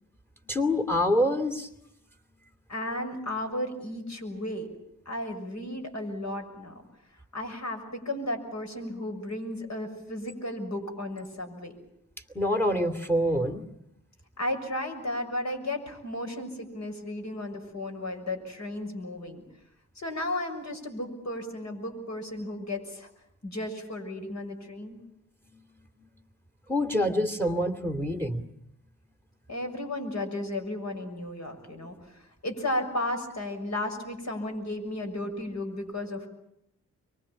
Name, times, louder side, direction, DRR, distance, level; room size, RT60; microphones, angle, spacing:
voice 1, 0.5-1.7 12.3-13.6 25.5-25.6 26.7-28.5, equal, 5° left, 8 dB, 2.6 m, -26 dB
voice 2, 2.7-4.7 5.0-6.8 7.3-11.8 14.4-19.4 19.9-23.1 23.4-25.0 29.5-36.3, left 1 dB, 50° left, 4 dB, 6.8 m, -34 dB
24.0 x 23.5 x 8.8 m, 0.78 s
hypercardioid pair, 40°, 36 cm